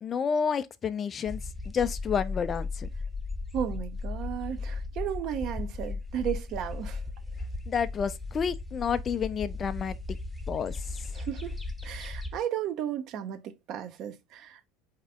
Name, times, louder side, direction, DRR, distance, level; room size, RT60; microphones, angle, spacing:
voice 1, 0.0-1.4 1.7-2.9 7.7-10.2 10.5-11.1, left 6 dB, 35° left, 0.4 m, -30 dB
sound 1, 1.3-12.4, left 3 dB, 5° left, 0.7 m, -36 dB
voice 2, 3.5-7.0 11.1-11.6 11.8-14.7, right 10 dB, 50° right, 0.6 m, -34 dB
4.0 x 2.9 x 3.5 m
figure-of-eight pair, 70°, 0 cm